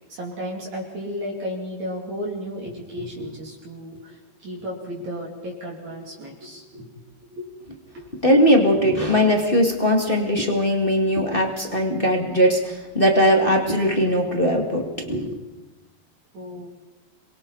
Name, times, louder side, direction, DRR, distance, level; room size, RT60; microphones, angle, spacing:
voice 1, 0.1-7.0 7.3-7.5 7.9-8.0 16.3-16.7, equal, 50° right, -3 dB, 4.0 m, -33 dB
voice 2, 8.2-15.4, equal, 25° left, 1 dB, 1.4 m, -20 dB
28.0 x 23.0 x 4.1 m, 1.1 s
omnidirectional pair, 4.3 m